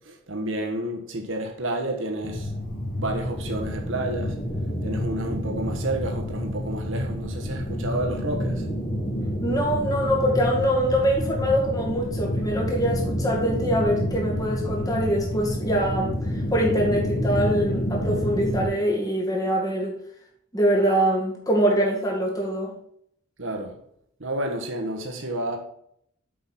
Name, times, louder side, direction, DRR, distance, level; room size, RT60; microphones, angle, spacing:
voice 1, 0.0-2.5 3.0-4.4 4.8-8.7 23.4-23.8 24.2-25.6, right 1 dB, 65° right, 1.4 m, -30 dB
sound 1, 2.2-18.7, equal, 40° left, 2.2 m, -28 dB
voice 2, 9.4-16.2 16.5-20.0 20.5-22.7, equal, 15° left, 1.9 m, -24 dB
7.9 x 5.5 x 4.3 m
head